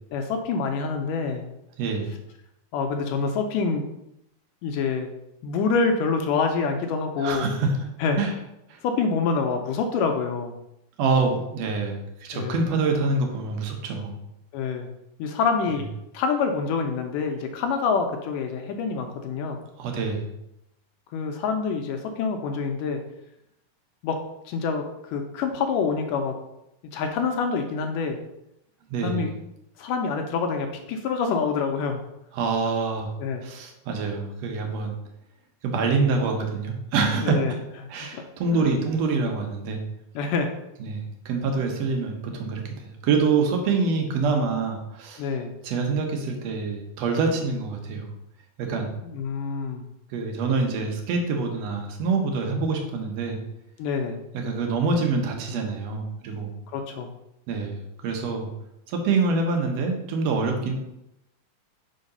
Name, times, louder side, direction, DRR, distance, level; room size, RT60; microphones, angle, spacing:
voice 1, 0.1-1.5 2.7-3.8 4.6-5.1 5.4-7.5 8.0-8.2 8.8-10.6 12.3-12.7 14.5-14.9 15.2-15.8 16.1-19.6 21.1-23.0 24.0-24.2 24.5-26.3 26.9-28.2 29.0-29.3 29.8-32.0 33.2-33.4 37.2-37.5 38.0-38.7 40.2-40.5 45.2-45.5 49.0-49.9 53.8-54.2 56.7-57.1, left 5 dB, 80° left, 4 dB, 2.0 m, -26 dB
voice 2, 1.8-2.1 7.2-7.7 8.2-8.3 8.7-8.8 11.0-14.2 19.8-20.3 28.9-29.3 32.3-33.1 33.4-34.9 35.6-37.6 37.9-39.8 40.8-45.2 45.6-48.1 48.6-48.9 50.1-53.4 54.4-56.5 57.5-58.5 58.9-60.7, right 4 dB, 70° right, 3 dB, 1.6 m, -26 dB
6.4 x 3.9 x 5.4 m, 0.85 s
omnidirectional pair, 4.1 m